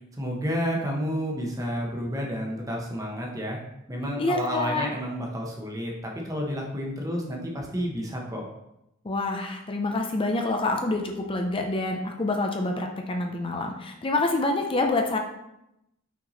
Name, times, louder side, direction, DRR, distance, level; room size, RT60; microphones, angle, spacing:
voice 1, 0.1-3.6 3.9-8.5, equal, 15° right, -1 dB, 1.1 m, -30 dB
voice 2, 4.2-4.9 9.0-15.2, left 2 dB, 25° left, 3 dB, 0.6 m, -27 dB
5.9 x 4.5 x 4.0 m, 0.85 s
head